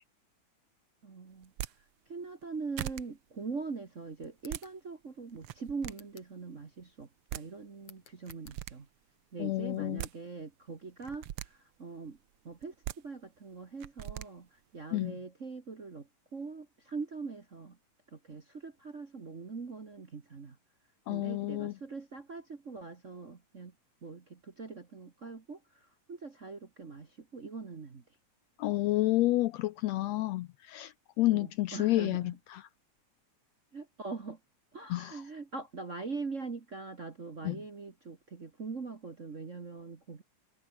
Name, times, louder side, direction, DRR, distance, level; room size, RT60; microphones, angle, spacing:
voice 1, 1.0-1.5 2.1-8.9 9.3-12.2 12.4-14.5 14.7-17.8 18.1-20.6 21.1-23.7 24.0-28.0 31.3-32.4 33.7-34.4 34.7-40.2, right 4 dB, 35° right, 1.2 m, -42 dB
sound 1, 1.4-1.7 2.4-2.5 2.8-3.0 4.2-4.6 5.4-5.9 7.0-7.1 7.3-7.4 8.3-8.7 9.7-10.1 11.0-11.5 12.6-13.0 13.8-14.3, right 13 dB, 70° right, 1.3 m, -39 dB
sound 2, 4.3-4.8 5.9-6.4 7.8-8.6, left 8 dB, 55° left, 2.9 m, -57 dB
voice 2, 9.4-10.0 14.9-15.2 21.1-21.7 28.6-32.6 34.9-35.2 37.4-37.6, left 17 dB, 75° left, 1.6 m, -30 dB
omnidirectional pair, 3.5 m